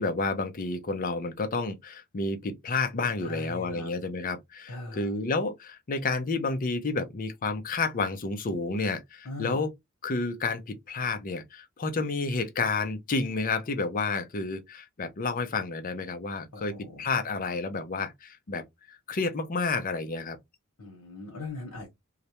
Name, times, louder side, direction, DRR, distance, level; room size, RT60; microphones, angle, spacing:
voice 1, 0.0-9.7 10.0-20.4, left 3 dB, 40° left, 0.5 m, -30 dB
voice 2, 3.2-3.9 4.7-5.1 9.2-9.6 16.5-17.1 20.8-21.9, left 2 dB, 85° left, 0.9 m, -40 dB
2.4 x 2.1 x 2.8 m
head